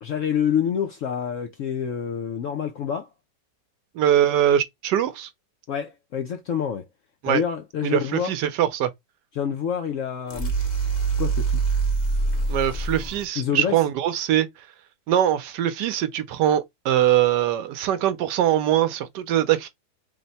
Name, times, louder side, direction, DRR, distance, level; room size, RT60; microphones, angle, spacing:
voice 1, 0.0-3.1 5.7-6.9 7.2-8.3 9.4-10.5 11.2-11.6 13.4-13.8, left 8 dB, 70° left, 0.7 m, -27 dB
voice 2, 3.9-5.3 7.2-7.4 7.8-8.9 12.5-14.5 15.1-19.7, right 11 dB, 80° right, 1.2 m, -22 dB
sound 1, 10.3-13.2, right 4 dB, 30° left, 0.9 m, -24 dB
3.5 x 2.1 x 3.9 m
omnidirectional pair, 1.9 m